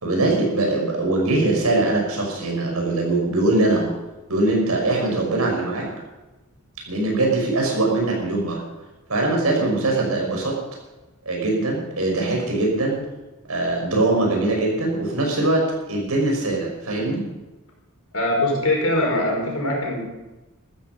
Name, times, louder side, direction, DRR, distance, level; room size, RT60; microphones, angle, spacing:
voice 1, 0.0-3.9 4.3-5.9 6.9-8.6 9.1-10.6 11.3-13.0 13.5-17.2, right 2 dB, 80° right, 0 dB, 5.9 m, -22 dB
voice 2, 18.1-20.0, left 1 dB, 75° left, 0 dB, 5.5 m, -22 dB
14.5 x 14.0 x 5.5 m, 1.1 s
head